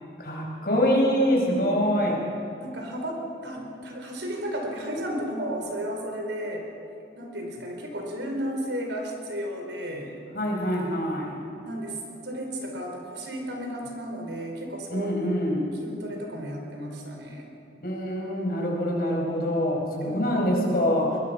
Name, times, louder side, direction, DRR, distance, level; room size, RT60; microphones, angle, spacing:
voice 1, 0.2-2.3 10.3-11.4 14.9-15.7 17.8-21.2, equal, 55° left, -1 dB, 5.1 m, -25 dB
voice 2, 2.6-6.6 7.1-10.2 11.6-17.5 20.0-20.2, equal, 80° right, 1 dB, 4.4 m, -33 dB
22.0 x 22.0 x 5.9 m, 2.5 s
head